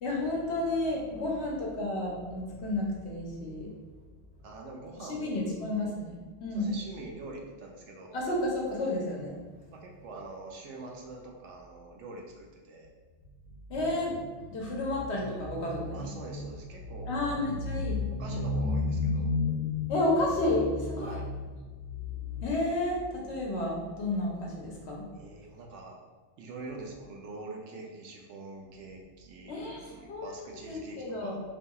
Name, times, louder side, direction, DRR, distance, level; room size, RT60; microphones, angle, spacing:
voice 1, 0.0-3.7 5.1-6.7 8.1-9.4 13.7-16.4 17.1-21.5 22.0-25.1 29.5-31.4, left 2 dB, 75° left, -3 dB, 1.0 m, -31 dB
voice 2, 1.1-1.5 4.4-5.8 6.5-8.2 9.7-12.9 15.9-17.4 18.2-19.3 21.0-21.3 25.1-26.0 26.4-31.4, right 3 dB, 85° right, 0 dB, 0.9 m, -45 dB
2.8 x 2.6 x 2.2 m, 1.3 s
omnidirectional pair, 1.2 m